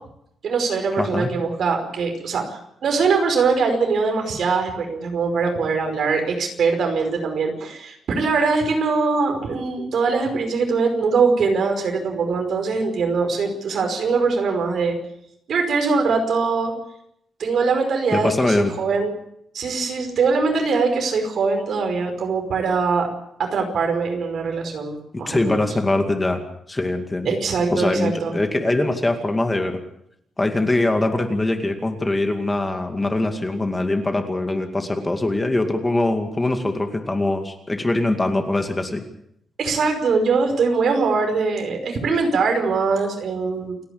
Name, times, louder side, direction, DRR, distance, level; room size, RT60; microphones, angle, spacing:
voice 1, 0.4-15.0 15.5-16.7 17.4-19.1 19.5-23.1 23.4-25.7 27.3-28.4 39.6-43.8, right 4 dB, 65° right, 4 dB, 5.3 m, -22 dB
voice 2, 1.0-1.3 18.1-18.7 25.3-26.4 26.7-27.4 27.7-29.8 30.4-39.0, left 2 dB, 15° left, 5 dB, 2.3 m, -22 dB
29.0 x 10.5 x 8.6 m, 0.75 s
wide cardioid pair, 135°, 0 cm